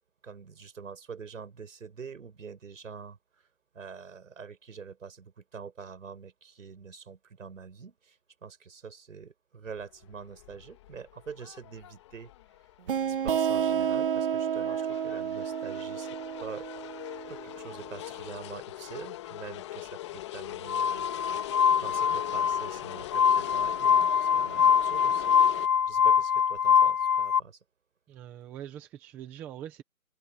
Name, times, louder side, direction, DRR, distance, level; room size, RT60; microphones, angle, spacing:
voice 1, 0.2-3.5 3.7-12.3 13.1-16.7 17.3-25.4 25.9-27.6, right 6 dB, 65° right, 7.4 m, -45 dB
sound 1, 9.7-25.7, left 14 dB, 20° left, 1.7 m, -42 dB
sound 2, 12.9-18.2, right 8 dB, 40° right, 2.7 m, -31 dB
Glass, 20.7-27.4, left 8 dB, 80° left, 2.3 m, -24 dB
voice 2, 28.1-29.8, right 11 dB, 5° right, 0.9 m, -43 dB
hypercardioid pair, 165°, 42 cm